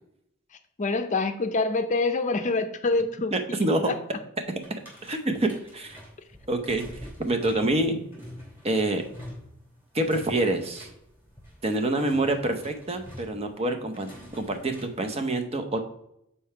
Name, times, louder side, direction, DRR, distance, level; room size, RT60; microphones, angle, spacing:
voice 1, 0.8-4.0, left 3 dB, 35° left, 8 dB, 0.6 m, -26 dB
voice 2, 3.3-3.9 5.0-6.0 6.5-6.9 7.2-8.0 8.6-9.0 9.9-10.9 11.6-15.8, right 2 dB, 30° right, 6 dB, 0.8 m, -26 dB
sound 1, 4.6-15.1, equal, 10° right, 2.7 m, -46 dB
5.4 x 4.3 x 5.6 m, 0.79 s
head